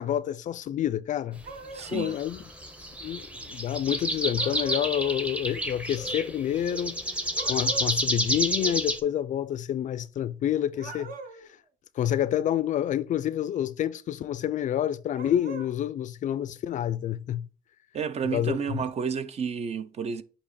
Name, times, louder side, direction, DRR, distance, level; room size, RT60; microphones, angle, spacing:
voice 1, 0.0-1.4 1.9-2.4 3.0-7.0 7.5-11.1 12.0-17.5 18.3-18.8, left 11 dB, 50° left, 0.4 m, -28 dB
sound 1, 1.4-2.2 4.4-5.2 7.4-8.0 10.7-11.5 15.1-15.7, right 4 dB, 55° right, 1.2 m, -41 dB
sound 2, 1.7-9.0, equal, 5° right, 0.8 m, -30 dB
voice 2, 1.7-2.2 17.9-20.2, right 6 dB, 40° right, 0.6 m, -31 dB
8.4 x 2.9 x 4.1 m
cardioid pair, 110°, 17 cm